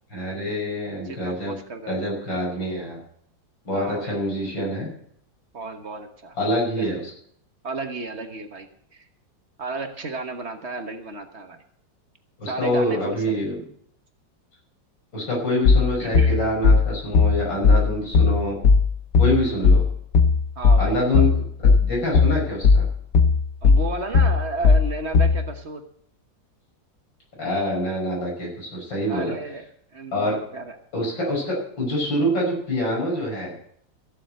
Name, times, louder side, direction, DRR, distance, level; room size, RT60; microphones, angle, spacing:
voice 1, 0.1-1.5 1.9-3.0 3.6-4.9 6.4-7.1 12.4-13.6 15.1-18.6 19.2-19.8 20.8-21.3 21.8-22.9 27.4-29.3 30.1-30.3 30.9-33.5, left 1 dB, 85° left, -2 dB, 6.5 m, -25 dB
voice 2, 1.0-1.9 3.7-4.2 5.5-6.4 6.7-6.9 7.6-9.1 9.6-11.6 12.5-13.4 16.0-16.4 20.6-21.3 23.6-25.8 29.1-29.6 29.9-30.7, right 3 dB, 40° right, 6 dB, 1.3 m, -33 dB
sound 1, 15.7-25.4, left 4 dB, 65° left, 1.8 m, -16 dB
15.5 x 7.4 x 7.6 m, 0.66 s
omnidirectional pair, 2.0 m